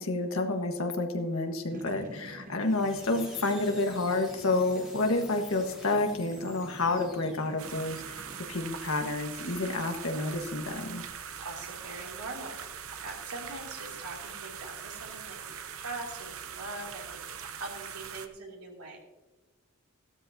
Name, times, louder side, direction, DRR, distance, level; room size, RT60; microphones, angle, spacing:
voice 1, 0.0-8.2 8.5-11.0, left 2 dB, 65° left, 4 dB, 1.4 m, -29 dB
sound 1, 1.7-8.4, right 1 dB, 40° right, 1.0 m, -48 dB
sound 2, 2.6-7.8, left 1 dB, ahead, 4.2 m, -50 dB
sound 3, 7.6-18.3, right 7 dB, 70° right, 0.8 m, -42 dB
voice 2, 11.4-19.0, right 2 dB, 85° right, -1 dB, 2.8 m, -43 dB
15.0 x 12.5 x 2.7 m, 1.1 s
head